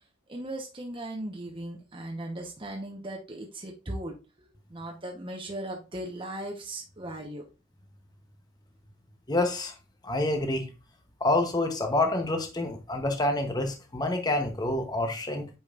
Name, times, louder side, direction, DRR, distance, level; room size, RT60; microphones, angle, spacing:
voice 1, 0.3-4.1 4.7-7.4, right 1 dB, 25° right, 1.0 m, -37 dB
voice 2, 9.3-9.7 10.0-10.7 11.2-15.5, left 2 dB, 20° left, 0.9 m, -27 dB
8.6 x 5.1 x 2.5 m
head